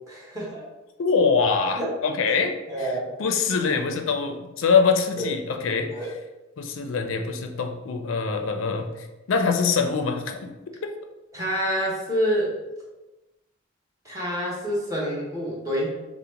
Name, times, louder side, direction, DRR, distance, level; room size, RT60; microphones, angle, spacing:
voice 1, 0.1-0.7 1.8-1.9 2.3-2.4 2.7-3.1 5.1-5.3 5.9-6.1 11.3-12.6 14.0-15.9, equal, 15° right, -5 dB, 1.0 m, -27 dB
voice 2, 1.0-5.9 6.6-10.5 10.8-10.9, left 5 dB, 75° left, 5 dB, 0.4 m, -24 dB
3.9 x 2.1 x 4.4 m, 1.1 s
head